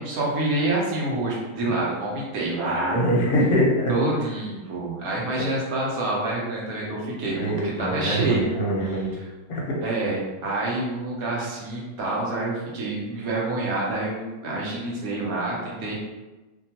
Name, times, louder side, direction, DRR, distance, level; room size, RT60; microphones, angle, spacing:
voice 1, 0.0-3.0 3.9-9.2 9.8-15.9, right 2 dB, 75° right, -4 dB, 1.2 m, -27 dB
voice 2, 2.9-3.9 7.3-9.1 9.5-9.8, equal, 50° left, -3 dB, 0.7 m, -23 dB
2.8 x 2.2 x 2.8 m, 1.1 s
omnidirectional pair, 1.6 m